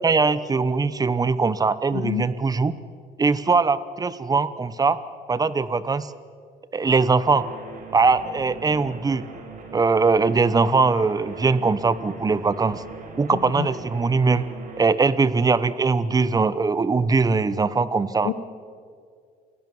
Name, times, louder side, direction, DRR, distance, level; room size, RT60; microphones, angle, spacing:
voice 1, 0.0-2.7 3.2-5.0 5.3-6.1 6.7-7.5 7.9-9.2 9.7-12.8 13.2-14.4 14.8-18.3, right 4 dB, 20° right, 15 dB, 1.0 m, -21 dB
voice 2, 1.9-2.3 13.3-13.7 18.2-18.3, left 13 dB, 80° left, 13 dB, 1.3 m, -28 dB
sound 1, 7.2-14.8, right 4 dB, 55° right, 4.8 m, -40 dB
28.5 x 17.0 x 7.1 m, 2.2 s
cardioid pair, 110°, 17 cm